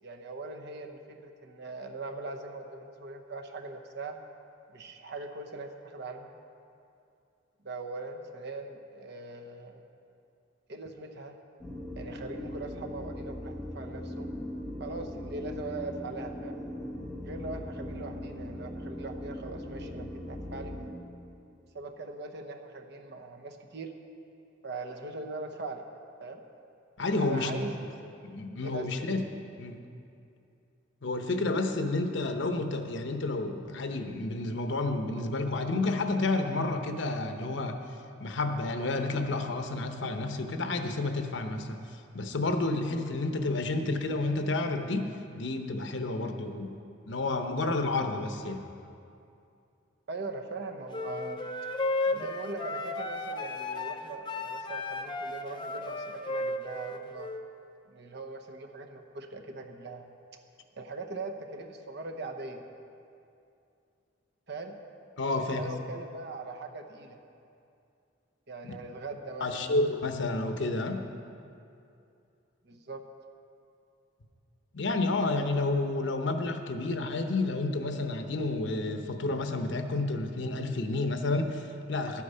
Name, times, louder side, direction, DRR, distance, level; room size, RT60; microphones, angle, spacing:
voice 1, 0.0-4.1 4.7-6.3 7.6-9.8 10.7-11.4 12.0-14.3 14.8-16.6 17.2-20.7 21.7-23.9 24.6-25.8 26.2-26.4 27.2-27.7 28.6-29.1 50.1-51.4 52.1-57.3 57.9-60.1 60.8-62.6 64.5-64.8 65.3-67.2 68.5-69.7 72.6-73.0, right 3 dB, 60° right, 4 dB, 0.9 m, -41 dB
sound 1, 11.6-20.9, left 1 dB, ahead, 1.1 m, -39 dB
voice 2, 27.0-27.5 28.2-29.3 29.6-29.8 31.0-37.8 38.2-41.8 42.1-45.1 45.4-46.8 47.1-48.6 65.2-65.8 68.6-68.7 69.4-71.0 74.7-82.2, left 2 dB, 65° left, 6 dB, 0.8 m, -30 dB
sound 2, 50.9-57.4, left 2 dB, 25° left, 0.5 m, -34 dB
12.0 x 8.5 x 5.5 m, 2.6 s
head